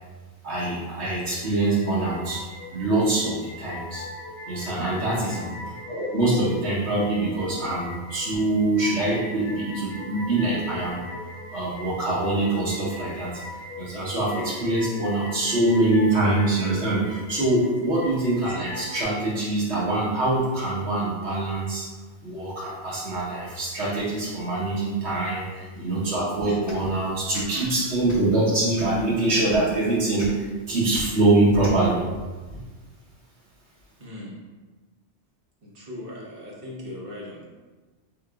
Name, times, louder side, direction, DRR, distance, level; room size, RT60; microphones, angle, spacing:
voice 1, 0.4-2.4 2.7-4.1 4.5-5.5 5.9-11.0 11.5-13.3 13.8-21.9 22.2-32.0 32.5-32.6, right 2 dB, 75° right, -7 dB, 1.4 m, -24 dB
sound 1, 1.4-19.0, left 2 dB, 60° left, 0.6 m, -41 dB
voice 2, 5.1-5.5 25.4-25.8 34.0-34.4 35.6-37.5, left 1 dB, 55° right, -5 dB, 1.1 m, -39 dB
sound 2, 26.6-26.8 27.3-27.5 28.0-28.3 28.7-29.0 29.5-29.6 30.2-30.3 30.9-31.0 31.6-31.8, left 1 dB, 20° left, 0.6 m, -38 dB
3.7 x 3.5 x 2.3 m, 1.3 s
omnidirectional pair, 1.1 m